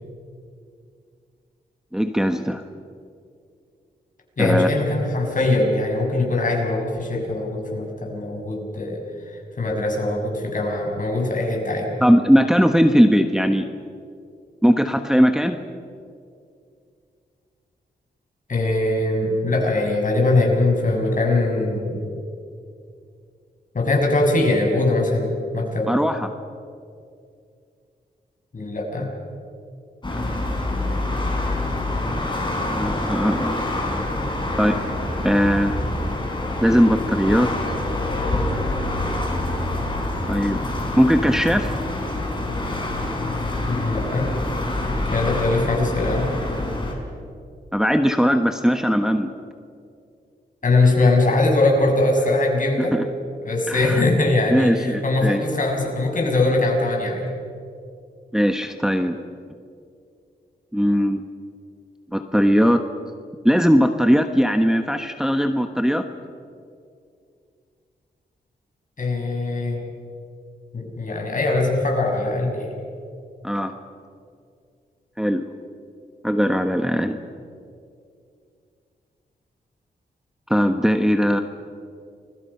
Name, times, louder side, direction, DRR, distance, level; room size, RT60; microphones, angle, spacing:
voice 1, 1.9-2.6 4.4-4.7 12.0-13.6 14.6-15.6 25.9-26.3 32.7-33.6 34.6-34.8 35.2-35.8 36.6-37.5 40.3-40.6 41.0-41.7 47.7-49.3 52.8-53.0 53.7-54.0 54.5-55.4 58.3-59.2 60.7-61.2 62.1-62.9 63.4-66.0 73.4-73.7 75.2-75.5 76.2-77.2 80.5-81.4, equal, 5° right, 6 dB, 1.2 m, -19 dB
voice 2, 4.4-9.0 9.6-11.9 18.5-22.0 23.7-25.9 28.5-29.1 43.7-44.3 45.1-46.3 50.6-52.9 53.4-57.3 69.0-69.8 70.7-72.7, left 2 dB, 50° left, 0 dB, 6.5 m, -21 dB
sound 1, 30.0-46.9, left 2 dB, 25° left, 5.3 m, -26 dB
30.0 x 22.0 x 5.7 m, 2.4 s
cardioid pair, 75°, 17 cm